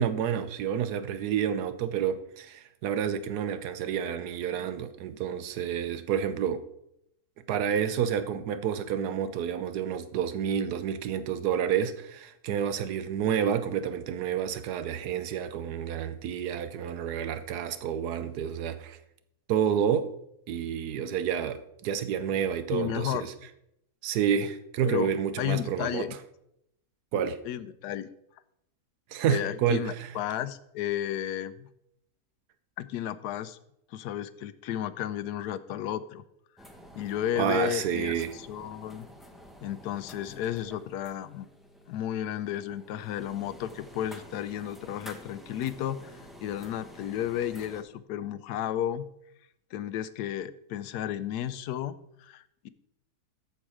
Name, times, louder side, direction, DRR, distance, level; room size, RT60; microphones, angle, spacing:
voice 1, 0.0-6.6 7.5-19.0 19.5-20.1 20.5-23.3 24.0-26.1 27.1-27.4 29.1-30.1 37.4-38.3, right 8 dB, 85° right, 1.3 m, -29 dB
voice 2, 22.7-23.3 24.9-25.1 25.4-26.2 27.4-28.1 29.3-31.7 32.8-33.6 33.9-36.2 36.9-39.1 39.6-41.5 41.9-49.1 49.7-52.7, left 11 dB, 90° left, 1.2 m, -33 dB
sound 1, 36.6-47.8, equal, ahead, 0.7 m, -50 dB
13.5 x 4.6 x 4.9 m
omnidirectional pair, 1.6 m